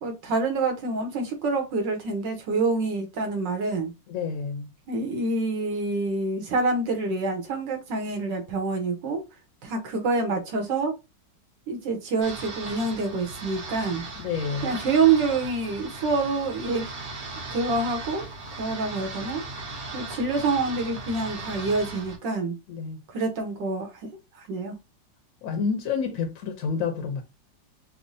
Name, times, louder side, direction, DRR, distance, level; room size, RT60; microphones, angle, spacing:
voice 1, 0.0-3.9 4.9-9.2 9.6-10.9 11.7-14.0 14.6-16.9 17.5-18.3 18.6-19.4 19.9-22.6 23.1-24.1 24.3-24.7, right 3 dB, 75° right, 1.6 m, -26 dB
voice 2, 4.1-4.7 14.2-14.7 22.7-23.0 25.4-27.2, left 5 dB, 65° left, 0.8 m, -29 dB
sound 1, 12.2-22.2, right 3 dB, 50° right, 0.6 m, -37 dB
6.0 x 2.0 x 2.6 m
omnidirectional pair, 2.0 m